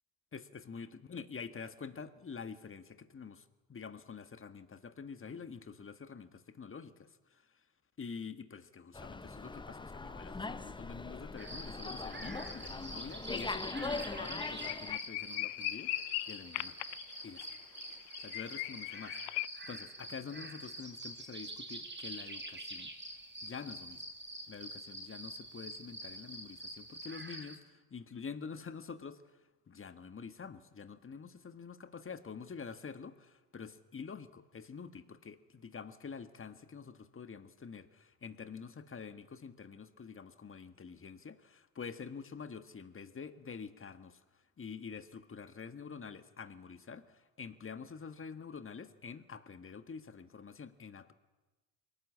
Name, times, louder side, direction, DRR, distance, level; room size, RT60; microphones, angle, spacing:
voice 1, 0.3-7.4 8.0-15.9 16.3-16.8 17.2-17.6 18.2-22.9 23.4-24.0 24.5-29.2 29.7-44.2 44.6-51.1, left 5 dB, 25° left, 11 dB, 1.6 m, -47 dB
Slam, 8.9-15.0, left 3 dB, 10° left, 0.8 m, -41 dB
sound 1, 11.4-27.6, right 1 dB, 20° right, 5.0 m, -46 dB
sound 2, 12.7-13.0 13.3-13.4 13.8-13.9 14.2-19.5, left 23 dB, 70° left, 0.7 m, -39 dB
22.5 x 18.5 x 8.5 m, 1.1 s
hypercardioid pair, 75°, 48 cm